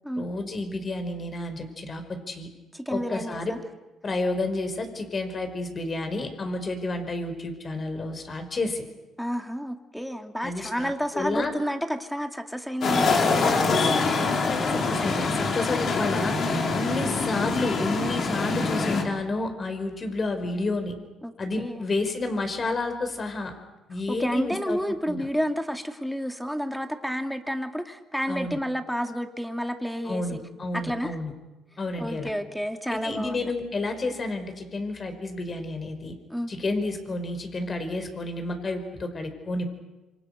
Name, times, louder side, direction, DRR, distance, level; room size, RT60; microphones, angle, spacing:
voice 1, 0.2-2.5 2.9-3.5 4.0-8.8 10.4-11.5 14.5-16.3 16.7-21.0 21.4-23.5 23.9-24.8 25.1-25.3 28.3-28.6 30.0-31.3 31.8-32.3 32.9-36.1 36.5-39.7, left 2 dB, 35° left, 7 dB, 5.2 m, -30 dB
voice 2, 2.7-3.6 9.2-13.6 21.2-21.3 21.6-21.9 24.1-30.4 30.8-31.2 32.0-33.5 36.3-36.5, equal, ahead, 6 dB, 2.5 m, -30 dB
sound 1, 12.8-19.0, left 4 dB, 55° left, 4.4 m, -24 dB
27.5 x 25.5 x 6.7 m, 1.1 s
cardioid pair, 95°, 0 cm